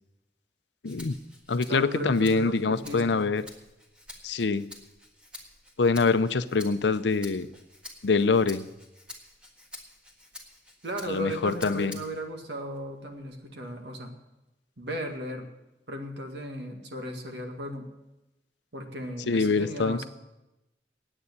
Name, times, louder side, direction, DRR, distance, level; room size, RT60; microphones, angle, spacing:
voice 1, 0.8-1.2 1.5-3.4 4.2-4.6 5.8-7.5 8.0-8.7 11.1-12.0 19.3-20.0, left 4 dB, 85° left, 13 dB, 0.6 m, -25 dB
Rattle (instrument), 0.8-12.3 12.7-13.9, left 1 dB, 5° right, 1.6 m, -49 dB
voice 2, 1.7-3.3 10.8-14.1 14.8-15.5 15.9-17.9 18.7-20.1, right 1 dB, 80° right, 3 dB, 1.9 m, -36 dB
9.7 x 8.7 x 9.8 m, 0.97 s
head